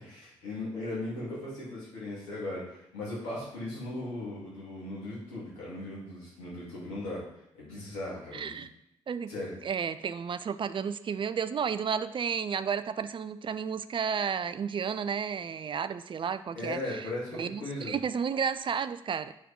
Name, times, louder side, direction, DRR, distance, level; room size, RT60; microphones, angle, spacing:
voice 1, 0.0-7.3 7.5-8.6 9.3-9.5 16.5-17.9, left 2 dB, 75° left, -8 dB, 3.0 m, -38 dB
voice 2, 8.3-8.7 9.1-9.3 9.6-17.1 17.3-19.3, right 7 dB, 35° right, 12 dB, 0.5 m, -32 dB
8.4 x 4.6 x 3.7 m, 0.78 s
figure-of-eight pair, 40°, 15 cm